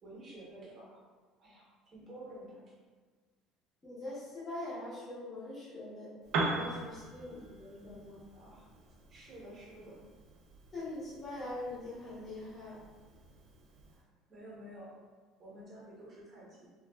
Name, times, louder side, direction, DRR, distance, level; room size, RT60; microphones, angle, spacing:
voice 1, 0.0-1.0 1.4-2.6 7.2-7.4 8.3-8.7 9.1-10.0 13.9-14.0 14.3-15.0 15.4-16.7, right 1 dB, 25° right, -5 dB, 0.8 m, -51 dB
voice 2, 3.8-6.1 6.4-8.2 10.7-12.8, left 2 dB, 20° left, -10 dB, 0.8 m, -43 dB
Piano, 6.2-14.0, right 3 dB, 55° right, 0.4 m, -41 dB
3.1 x 2.2 x 2.2 m, 1.4 s
cardioid pair, 170°, 0 cm